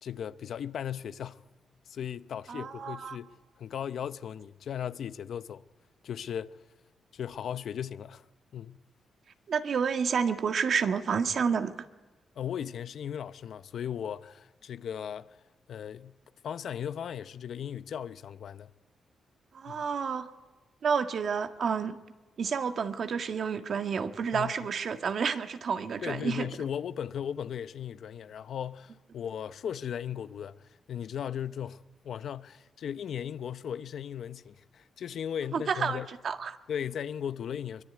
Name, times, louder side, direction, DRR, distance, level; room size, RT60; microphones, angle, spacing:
voice 1, 0.0-1.5 1.9-5.7 6.0-6.6 7.1-8.2 8.5-8.8 12.4-15.4 15.7-16.2 16.4-18.7 19.7-19.9 24.3-24.5 26.0-36.1 36.7-37.8, left 9 dB, 70° left, 0.8 m, -37 dB
voice 2, 2.5-3.2 9.5-11.7 19.5-20.3 20.8-22.0 22.4-26.5 35.5-36.6, right 6 dB, 55° right, 1.6 m, -30 dB
24.0 x 22.5 x 9.5 m
cardioid pair, 115°, 0 cm